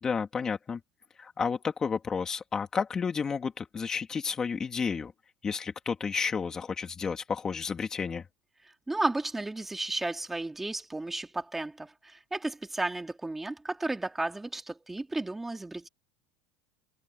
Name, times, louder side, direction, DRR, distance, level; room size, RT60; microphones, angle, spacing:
voice 1, 0.0-0.8 1.2-5.1 5.4-8.2, left 5 dB, 20° left, 2.5 m, -31 dB
voice 2, 8.6-15.9, right 2 dB, 10° right, 2.5 m, -33 dB
supercardioid pair, 135°, 3 cm